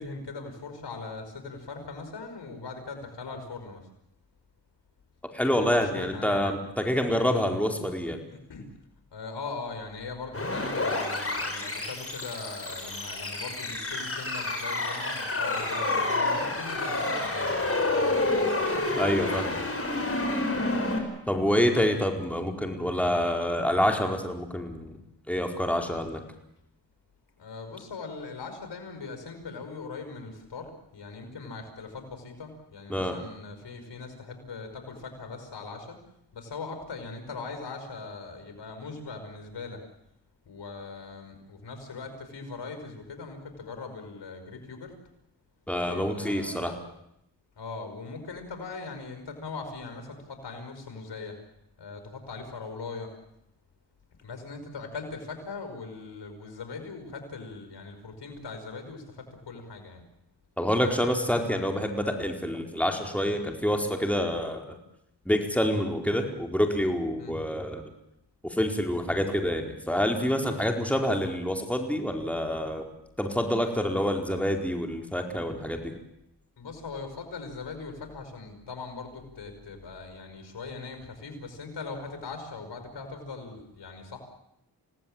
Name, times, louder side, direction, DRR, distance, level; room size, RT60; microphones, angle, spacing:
voice 1, 0.0-3.9 5.6-6.6 8.3-8.7 9.1-18.7 21.5-22.1 27.4-36.0 36.3-39.8 40.5-44.9 45.9-46.8 47.6-51.4 51.8-53.1 54.2-60.0 67.2-67.3 76.6-84.2, left 4 dB, 80° left, 6 dB, 5.3 m, -40 dB
voice 2, 5.3-8.2 19.0-19.6 21.3-24.9 25.3-26.2 32.9-33.2 45.7-46.7 60.6-64.8 65.2-67.8 68.4-72.8 73.2-75.9, equal, 5° left, 3 dB, 4.7 m, -27 dB
sound 1, 10.3-21.0, left 2 dB, 35° left, 6.6 m, -29 dB
28.5 x 18.0 x 8.9 m, 0.80 s
cardioid pair, 50°, 42 cm